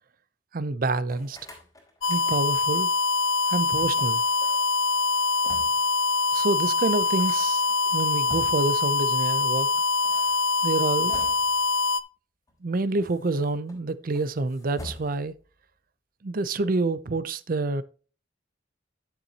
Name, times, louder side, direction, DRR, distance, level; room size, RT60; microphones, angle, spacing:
voice 1, 0.5-1.4 2.0-2.9 3.5-4.2 6.3-7.6 7.9-9.7 10.6-11.2 12.6-15.3 16.2-17.8, right 3 dB, 45° right, 0.5 m, -27 dB
sound 1, 1.1-2.7 4.0-5.9 6.3-6.4 6.6-8.8 9.9-11.7 12.5-13.8 14.1-15.4, left 1 dB, 15° left, 3.2 m, -46 dB
sound 2, 2.0-12.0, left 3 dB, 80° left, 0.5 m, -24 dB
11.0 x 6.9 x 2.8 m
head